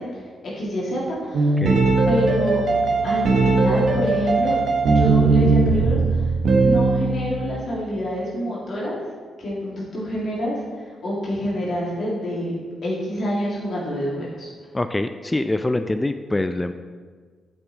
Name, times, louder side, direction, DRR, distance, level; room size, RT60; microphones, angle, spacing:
voice 1, 0.0-1.6 2.1-2.6 3.0-4.6 4.9-6.3 6.6-9.0 9.4-12.6 12.8-14.5, equal, 60° left, -6 dB, 2.3 m, -27 dB
sound 1, 1.3-7.4, right 3 dB, 65° right, 1.1 m, -19 dB
voice 2, 14.7-16.7, left 2 dB, 20° left, 9 dB, 0.4 m, -24 dB
7.1 x 5.7 x 4.1 m, 1.5 s
supercardioid pair, 50°, 0 cm